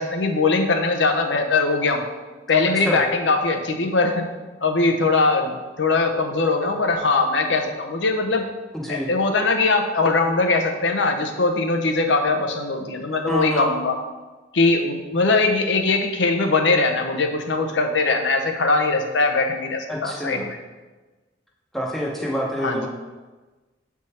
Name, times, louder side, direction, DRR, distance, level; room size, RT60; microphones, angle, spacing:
voice 1, 0.0-2.0 2.5-4.3 4.6-8.5 8.9-14.0 14.5-20.4 22.6-22.9, left 3 dB, 75° left, 4 dB, 0.7 m, -21 dB
voice 2, 8.7-9.1 13.3-13.7 19.9-20.5 21.7-22.9, equal, ahead, -3 dB, 0.8 m, -27 dB
7.6 x 3.6 x 4.2 m, 1.2 s
head